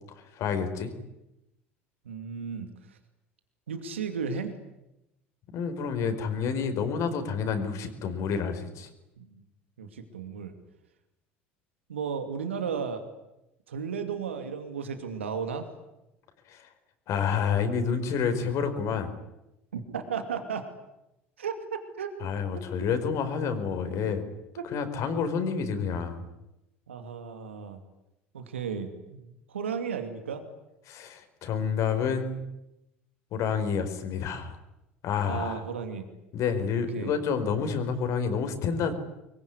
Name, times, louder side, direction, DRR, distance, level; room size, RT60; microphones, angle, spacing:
voice 1, 0.3-0.9 5.5-8.9 16.5-16.7 17.1-19.1 22.2-24.2 24.7-26.2 30.9-32.4 33.3-34.6 35.0-35.6 36.3-38.9, left 6 dB, 55° left, 8 dB, 4.9 m, -29 dB
voice 2, 2.0-3.0 3.7-4.5 9.2-9.4 9.8-10.5 11.9-13.0 13.7-15.7 19.7-20.7 21.4-22.1 26.9-27.8 28.3-30.4 35.2-36.1 36.7-37.1, right 6 dB, 80° right, 8 dB, 2.6 m, -34 dB
25.0 x 23.0 x 9.8 m, 0.89 s
hypercardioid pair, 70°, 6 cm